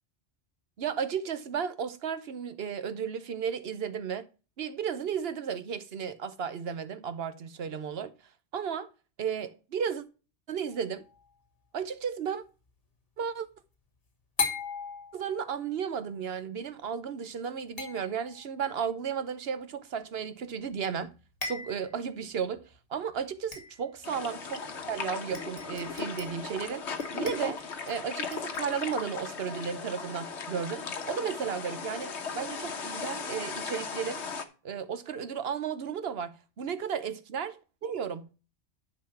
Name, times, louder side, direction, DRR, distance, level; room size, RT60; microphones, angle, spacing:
voice 1, 0.8-4.2 4.6-8.1 8.5-8.9 9.2-10.0 10.5-11.0 11.7-12.4 13.2-13.5 15.1-21.1 21.4-26.8 27.1-34.2 34.6-37.5 37.8-38.3, right 7 dB, 65° right, 1.0 m, -34 dB
sound 1, 10.7-11.3 14.4-15.7 17.8-18.6 20.7-20.8 21.1-21.2 21.4-22.0 22.6-22.7 23.5-24.0 24.9-25.0 25.3-26.5 27.0-28.0 28.3-28.8, left 4 dB, 55° left, 2.4 m, -38 dB
sound 2, 24.0-34.4, left 5 dB, 75° left, 1.3 m, -37 dB
10.5 x 4.1 x 5.7 m
omnidirectional pair, 1.2 m